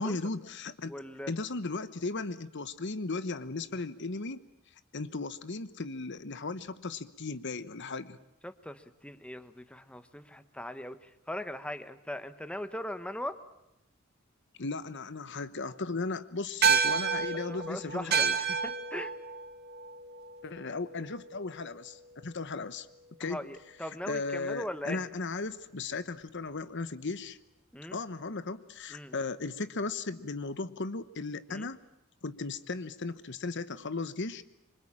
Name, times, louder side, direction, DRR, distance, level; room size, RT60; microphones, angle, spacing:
voice 1, 0.0-0.9 1.3-4.4 4.9-8.2 14.6-18.4 20.4-22.9 23.2-23.4 24.1-27.4 27.9-31.8 32.2-34.4, left 3 dB, 60° left, 13 dB, 1.1 m, -36 dB
voice 2, 0.9-1.3 8.4-13.4 17.5-19.1 23.2-25.0 27.7-28.0 28.9-29.2 31.5-31.7, left 1 dB, 5° left, 10 dB, 1.2 m, -40 dB
sound 1, 16.6-21.3, right 6 dB, 50° right, 2.5 m, -30 dB
26.0 x 25.0 x 8.8 m, 0.86 s
head